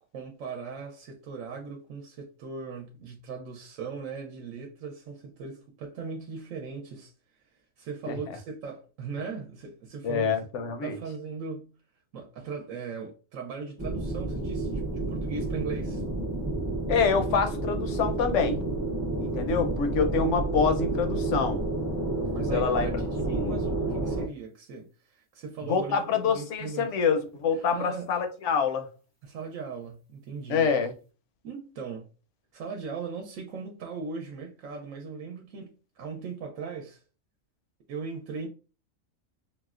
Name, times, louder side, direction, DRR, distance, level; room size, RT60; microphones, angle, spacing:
voice 1, 0.1-7.1 7.8-10.4 10.8-11.7 12.1-16.0 22.3-26.0 26.3-26.9 27.7-28.1 29.2-30.7 31.4-32.1 32.5-37.0 37.9-38.5, right 5 dB, 80° right, 1.0 m, -38 dB
voice 2, 10.0-11.0 16.9-18.6 19.2-21.6 22.2-22.9 23.3-23.6 25.6-28.9 30.5-30.9, left 5 dB, 70° left, 0.9 m, -26 dB
sound 1, 13.8-24.3, right 2 dB, 20° right, 0.4 m, -30 dB
4.1 x 2.0 x 2.4 m
omnidirectional pair, 1.4 m